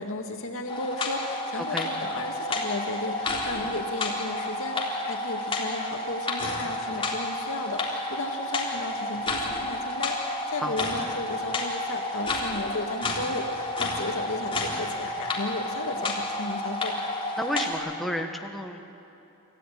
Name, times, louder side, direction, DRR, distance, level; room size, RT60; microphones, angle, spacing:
voice 1, 0.0-17.0, left 2 dB, 65° left, 3 dB, 2.2 m, -34 dB
sound 1, 0.7-17.7, left 1 dB, 25° left, 3.5 m, -31 dB
voice 2, 1.6-1.9 3.6-3.7 10.6-10.8 17.4-18.9, equal, ahead, 3 dB, 1.6 m, -32 dB
28.5 x 14.0 x 9.4 m, 3.0 s
head